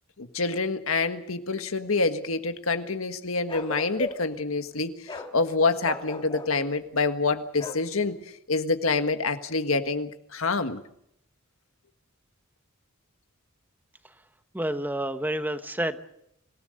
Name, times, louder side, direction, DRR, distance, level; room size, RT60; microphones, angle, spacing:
voice 1, 0.2-8.1 8.5-10.8, left 3 dB, 70° left, 8 dB, 1.6 m, -27 dB
Bark, 3.5-4.4 5.1-5.3 5.8-6.5 7.6-7.9, left 3 dB, 25° left, 2.3 m, -37 dB
voice 2, 14.5-16.0, right 1 dB, 10° right, 9 dB, 1.1 m, -29 dB
26.0 x 17.5 x 6.6 m, 0.75 s
head